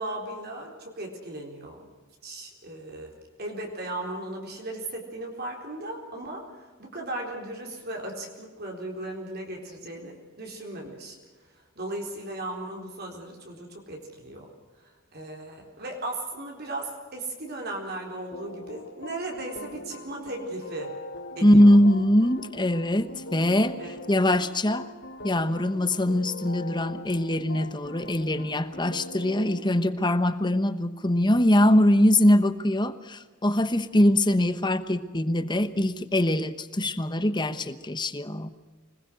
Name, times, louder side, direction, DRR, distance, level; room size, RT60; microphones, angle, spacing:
voice 1, 0.0-1.8 2.2-3.1 3.4-6.5 6.8-11.2 11.8-14.5 15.1-20.9 21.4-21.8 23.8-23.9, right 2 dB, 50° right, 1 dB, 4.2 m, -36 dB
sound 1, 18.3-29.6, left 1 dB, 60° left, 3.9 m, -42 dB
voice 2, 21.4-24.9 25.2-38.5, left 1 dB, 20° left, 12 dB, 1.1 m, -22 dB
25.5 x 20.5 x 6.5 m, 1.4 s
head